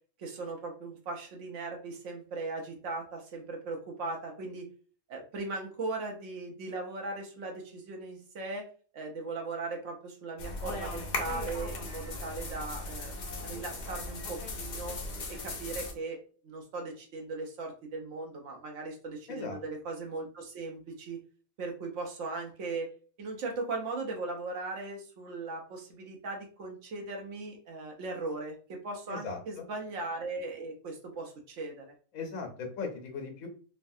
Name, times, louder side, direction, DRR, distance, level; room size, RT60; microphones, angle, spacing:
voice 1, 0.2-4.7 5.1-8.7 8.9-15.0 15.3-21.2 21.6-31.9, right 3 dB, 60° right, 1 dB, 1.1 m, -38 dB
sound 1, 10.4-15.9, left 2 dB, 65° left, 0.4 m, -38 dB
voice 2, 19.3-19.6 29.1-29.6 32.1-33.5, left 4 dB, 80° left, 3 dB, 1.2 m, -38 dB
3.2 x 2.3 x 2.6 m, 0.40 s
omnidirectional pair, 1.5 m